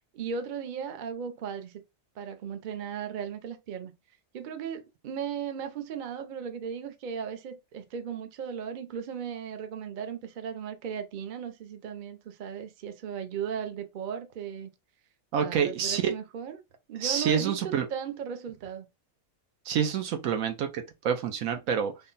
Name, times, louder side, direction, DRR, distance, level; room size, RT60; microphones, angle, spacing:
voice 1, 0.1-1.8 2.2-3.9 4.3-14.7 15.4-16.6 16.9-18.9, right 7 dB, 55° right, 0.6 m, -36 dB
voice 2, 15.3-16.1 17.0-17.9 19.7-21.9, right 8 dB, 80° right, 1.1 m, -27 dB
3.6 x 2.2 x 3.9 m
omnidirectional pair, 1.4 m